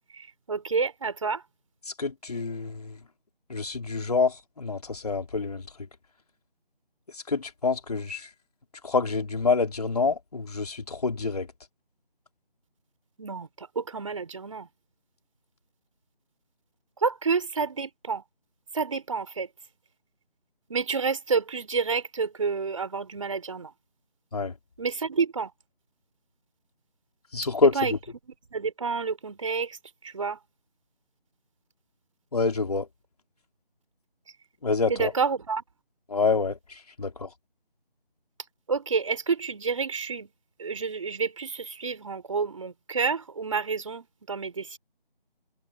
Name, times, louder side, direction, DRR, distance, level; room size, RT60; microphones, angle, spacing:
voice 1, 0.1-1.4 13.2-14.7 17.0-18.2 18.7-19.5 20.7-23.7 24.8-25.5 27.7-27.9 28.5-29.8 30.0-30.4 34.9-35.6 38.7-40.3 40.6-44.8, right 5 dB, 35° right, 3.6 m, -29 dB
voice 2, 2.0-3.0 3.5-5.6 7.1-8.3 8.8-11.5 24.3-24.5 27.3-27.8 32.3-32.9 34.6-35.1 36.1-37.3, left 4 dB, 40° left, 3.5 m, -27 dB
figure-of-eight pair, 165°, 29 cm